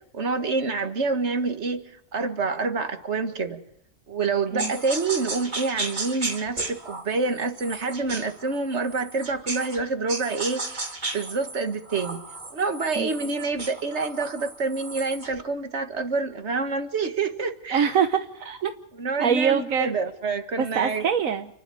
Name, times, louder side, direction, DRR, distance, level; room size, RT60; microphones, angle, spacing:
voice 1, 0.1-3.6 4.1-12.2 12.5-17.9 19.0-21.1, right 4 dB, 55° right, 7 dB, 2.0 m, -27 dB
sound 1, 4.6-9.8 10.1-15.4, right 2 dB, 35° right, 2.2 m, -35 dB
voice 2, 17.7-18.7 19.2-19.9 20.6-21.5, right 7 dB, 75° right, 7 dB, 1.5 m, -24 dB
30.0 x 12.0 x 9.4 m, 0.79 s
omnidirectional pair, 1.4 m